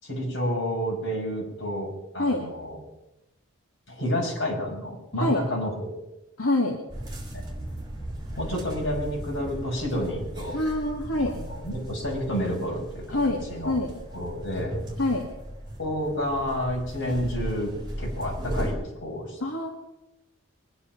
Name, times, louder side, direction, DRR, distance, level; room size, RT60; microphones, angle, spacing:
voice 1, 0.0-2.8 3.9-5.9 7.3-7.4 8.4-10.6 11.2-13.8 14.1-14.7 15.8-19.4, equal, 55° left, -2 dB, 5.5 m, -30 dB
voice 2, 6.4-6.8 10.5-11.4 13.1-14.0 15.0-15.2 19.4-19.7, left 2 dB, 80° left, 0 dB, 2.0 m, -26 dB
sound 1, 6.9-18.7, equal, 20° right, 3.5 m, -36 dB
23.0 x 9.9 x 5.9 m, 0.93 s
head